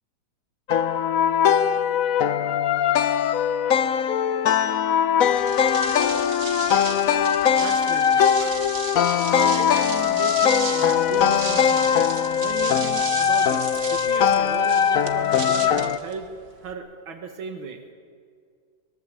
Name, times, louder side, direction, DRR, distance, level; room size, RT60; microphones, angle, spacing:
sound 1, 0.7-16.0, left 8 dB, 60° left, 0.9 m, -21 dB
sound 2, 5.3-16.7, right 5 dB, 50° right, 2.0 m, -35 dB
voice 1, 6.7-7.2 7.6-8.7 9.3-12.1 12.4-16.3 16.6-17.8, right 4 dB, 85° right, 5 dB, 2.5 m, -36 dB
22.5 x 22.0 x 7.6 m, 2.2 s
omnidirectional pair, 2.2 m